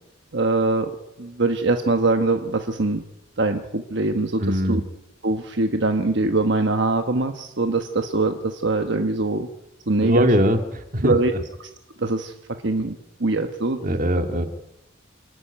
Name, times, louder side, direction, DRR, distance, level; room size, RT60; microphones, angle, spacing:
voice 1, 0.3-0.9 1.2-3.0 3.4-4.8 5.2-9.5 9.9-10.3 11.0-11.3 11.6-11.7 12.0-12.3 12.6-13.8, right 2 dB, 60° right, 6 dB, 1.2 m, -22 dB
voice 2, 4.4-4.8 10.0-11.1 13.8-14.5, equal, 40° right, 6 dB, 2.0 m, -21 dB
28.0 x 11.5 x 9.1 m, 0.93 s
head